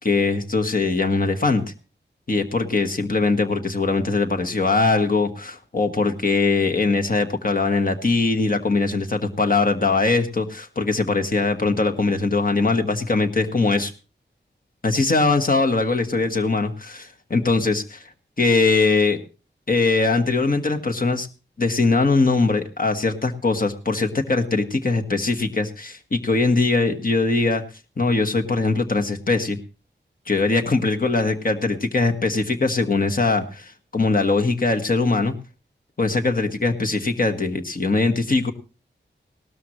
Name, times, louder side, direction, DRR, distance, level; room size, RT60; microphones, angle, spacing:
voice 1, 0.0-1.6 2.3-13.9 14.8-18.1 18.4-19.2 19.7-21.3 21.6-27.6 28.0-29.6 30.3-35.3 36.0-38.5, left 3 dB, 45° left, 4 dB, 1.4 m, -21 dB
18.0 x 12.5 x 3.1 m, 0.32 s
wide cardioid pair, 70°, 19 cm